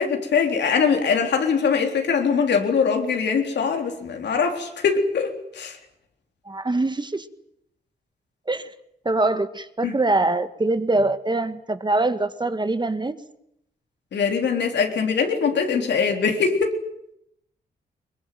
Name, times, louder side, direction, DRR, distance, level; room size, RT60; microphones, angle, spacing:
voice 1, 0.0-5.8 9.8-10.0 14.1-16.7, left 5 dB, 80° left, 4 dB, 3.8 m, -22 dB
voice 2, 6.5-7.3 8.5-8.7 9.1-13.2, right 2 dB, 25° right, 11 dB, 1.8 m, -23 dB
22.5 x 21.0 x 9.3 m, 0.77 s
cardioid pair, 55°, 18 cm